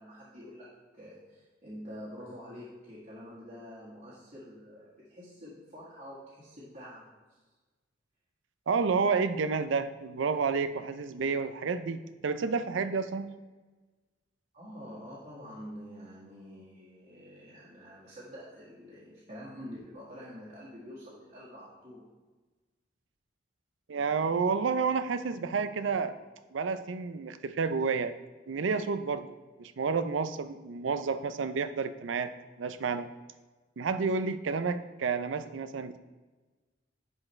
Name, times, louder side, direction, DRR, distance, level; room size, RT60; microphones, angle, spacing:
voice 1, 0.0-7.1 14.5-22.1, equal, 40° right, -9 dB, 1.8 m, -47 dB
voice 2, 8.7-13.3 23.9-26.1 26.5-28.1 28.5-29.3 29.6-32.3 32.6-33.1 33.8-36.0, right 5 dB, 75° right, 11 dB, 0.5 m, -30 dB
10.5 x 4.6 x 3.2 m, 1.3 s
head